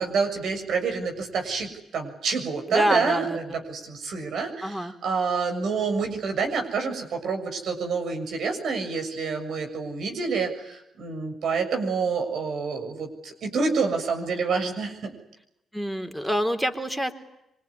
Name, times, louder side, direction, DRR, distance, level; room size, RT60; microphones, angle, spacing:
voice 1, 0.0-15.1, right 5 dB, 70° right, 3 dB, 7.1 m, -28 dB
voice 2, 2.7-3.6 4.6-4.9 15.7-17.1, equal, 5° right, 7 dB, 4.0 m, -26 dB
26.5 x 22.0 x 9.9 m, 0.84 s
supercardioid pair, 55°, 0 cm